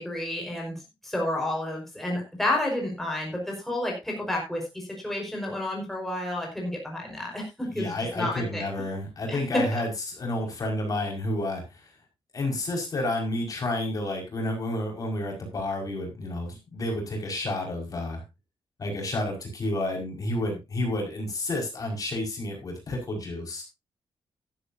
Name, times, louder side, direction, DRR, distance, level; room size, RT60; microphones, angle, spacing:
voice 1, 0.0-8.6 9.3-9.8, left 1 dB, 5° left, -1 dB, 4.9 m, -30 dB
voice 2, 7.7-11.8 12.3-18.2 18.8-23.6, left 1 dB, 40° left, 1 dB, 5.3 m, -30 dB
14.5 x 12.0 x 2.7 m, 0.24 s
wide cardioid pair, 155°, 9 cm